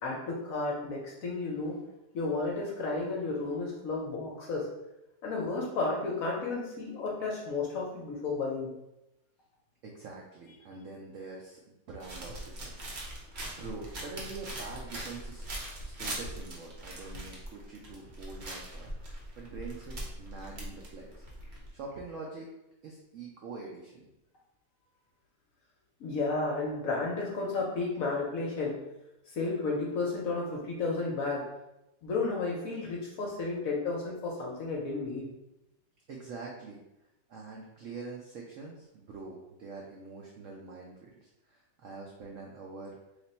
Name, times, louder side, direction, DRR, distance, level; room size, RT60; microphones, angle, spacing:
voice 1, 0.0-1.8 2.1-4.7 5.2-8.7 26.0-28.8 29.3-31.4 32.0-35.3, left 3 dB, 65° left, -2 dB, 0.9 m, -32 dB
voice 2, 9.8-11.6 11.9-12.7 13.2-13.3 13.6-15.5 15.8-21.2 21.7-22.5 22.8-24.1 36.1-36.8 37.3-43.0, right 4 dB, 80° right, -2 dB, 0.7 m, -45 dB
sound 1, 12.0-21.7, right 1 dB, 50° right, 0.8 m, -41 dB
3.2 x 2.4 x 4.1 m, 0.91 s
omnidirectional pair, 1.9 m